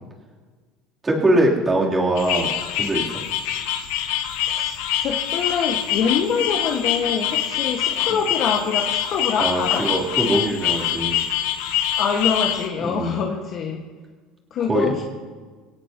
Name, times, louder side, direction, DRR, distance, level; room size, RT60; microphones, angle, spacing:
voice 1, 1.0-2.5 2.8-3.0 8.1-8.2 9.4-11.2 12.8-13.2 14.7-14.9, right 1 dB, 15° right, -3 dB, 3.6 m, -22 dB
sound 1, 2.2-12.7, left 10 dB, 85° left, 1.4 m, -25 dB
voice 2, 5.0-9.9 12.0-13.8 14.5-15.0, left 6 dB, 45° left, -1 dB, 1.8 m, -25 dB
24.0 x 18.0 x 3.1 m, 1.5 s
cardioid pair, 145°, 0 cm